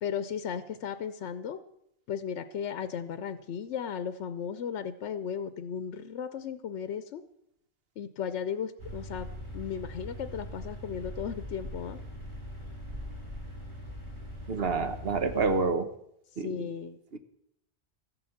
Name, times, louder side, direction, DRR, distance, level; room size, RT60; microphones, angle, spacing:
voice 1, 0.0-1.6 2.1-7.2 8.0-9.3 9.5-12.0 16.4-17.0, left 7 dB, 80° left, 11 dB, 1.0 m, -35 dB
sound 1, 8.8-15.6, equal, 25° right, 2.5 m, -41 dB
voice 2, 14.5-15.9 16.4-16.7 17.1-17.2, right 4 dB, 60° right, 9 dB, 1.2 m, -28 dB
14.0 x 8.0 x 7.1 m, 0.77 s
omnidirectional pair, 1.2 m